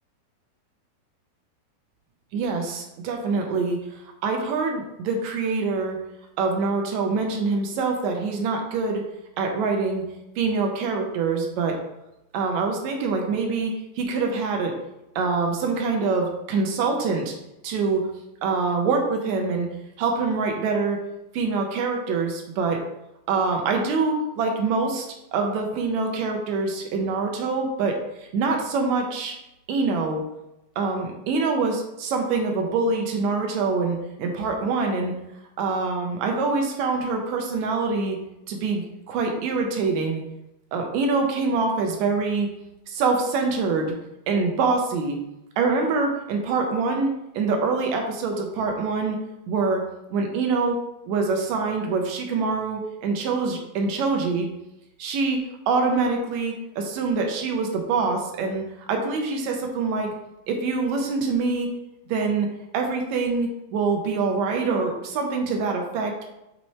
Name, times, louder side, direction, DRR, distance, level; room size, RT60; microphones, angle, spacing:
voice 1, 2.3-3.8 4.2-6.0 6.4-9.1 9.4-10.0 10.4-11.8 12.3-14.7 15.2-17.3 17.6-18.0 18.4-19.7 20.0-21.0 21.3-22.8 23.3-25.1 25.3-29.3 29.7-30.2 30.8-35.1 35.6-38.2 38.5-40.2 40.7-42.5 42.9-43.9 44.3-45.2 45.6-49.2 49.5-49.8 50.1-50.8 51.1-54.5 55.0-55.4 55.7-58.6 58.9-60.1 60.5-61.7 62.1-62.5 62.7-66.2, right 4 dB, 75° right, 2 dB, 1.7 m, -25 dB
8.5 x 3.1 x 4.3 m, 0.90 s
omnidirectional pair, 4.2 m